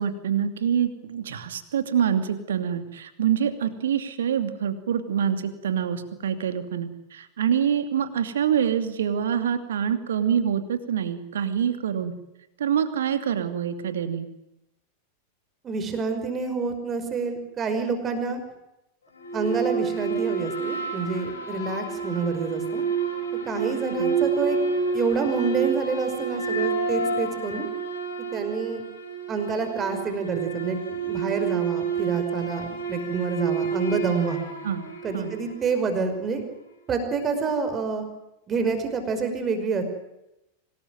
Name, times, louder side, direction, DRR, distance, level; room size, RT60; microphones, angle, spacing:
voice 1, 0.0-12.1 12.6-14.3 23.9-24.1 34.6-34.9 35.1-35.3, right 8 dB, 65° right, 9 dB, 2.7 m, -26 dB
voice 2, 15.6-18.4 19.3-22.8 23.4-24.6 24.9-27.7 28.3-28.8 29.3-34.4 35.0-36.4 36.9-38.0 38.5-39.8, right 5 dB, 25° right, 7 dB, 5.5 m, -28 dB
sound 1, 19.2-35.8, right 5 dB, 75° left, 5.9 m, -29 dB
26.0 x 19.5 x 9.3 m, 0.90 s
figure-of-eight pair, 90°, 0 cm